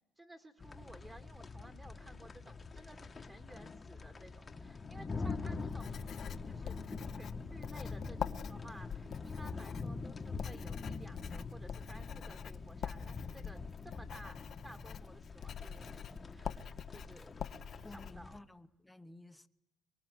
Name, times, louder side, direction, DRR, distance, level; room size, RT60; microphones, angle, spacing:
voice 1, 0.2-6.0 6.5-6.8 7.2-17.3 17.9-18.4, right 1 dB, 15° right, 1.9 m, -55 dB
sound 1, 0.6-18.4, left 4 dB, 25° left, 1.3 m, -44 dB
Writing, 5.7-18.1, left 8 dB, 50° left, 0.9 m, -45 dB
voice 2, 17.8-19.5, left 2 dB, 5° left, 1.1 m, -53 dB
23.5 x 23.5 x 7.9 m
cardioid pair, 120°, 0 cm